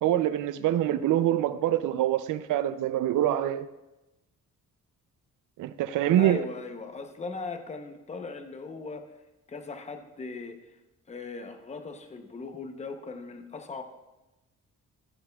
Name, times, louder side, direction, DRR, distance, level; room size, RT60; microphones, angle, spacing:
voice 1, 0.0-3.7 5.6-6.4, right 12 dB, 75° right, 0.5 m, -25 dB
voice 2, 6.1-9.1 9.5-10.8 11.1-13.8, left 4 dB, 20° left, 0.7 m, -39 dB
14.0 x 11.0 x 2.3 m
cardioid pair, 155°, 31 cm